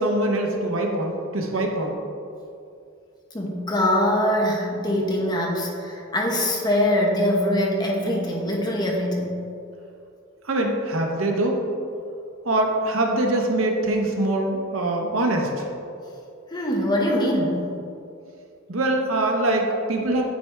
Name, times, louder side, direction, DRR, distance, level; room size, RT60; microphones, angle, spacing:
voice 1, 0.0-2.0 10.4-11.6 12.4-15.7 18.7-20.2, right 1 dB, 80° right, 2 dB, 0.9 m, -23 dB
voice 2, 3.3-9.3 16.5-17.6, left 1 dB, 20° left, -1 dB, 0.9 m, -23 dB
9.3 x 4.6 x 3.4 m, 2.5 s
head